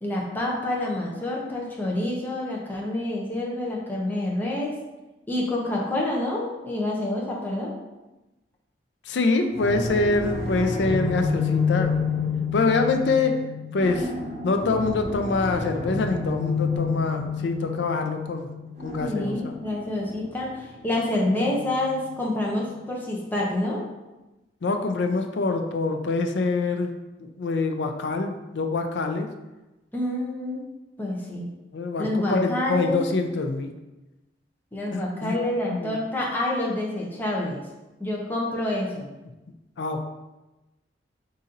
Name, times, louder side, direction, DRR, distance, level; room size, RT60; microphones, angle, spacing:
voice 1, 0.0-4.8 5.3-7.7 19.0-23.8 29.9-30.6 31.0-31.5 32.0-33.0 34.7-37.6 38.0-39.1, left 1 dB, 10° left, -3 dB, 0.7 m, -27 dB
voice 2, 9.1-11.9 12.5-13.4 13.7-14.1 14.4-18.5 18.8-19.5 24.6-29.3 31.7-33.7 34.9-35.4 35.7-36.0 39.8-40.1, left 3 dB, 80° left, 5 dB, 0.5 m, -25 dB
sound 1, 9.5-22.3, left 5 dB, 40° right, 0.9 m, -29 dB
4.0 x 2.7 x 3.8 m, 1.0 s
head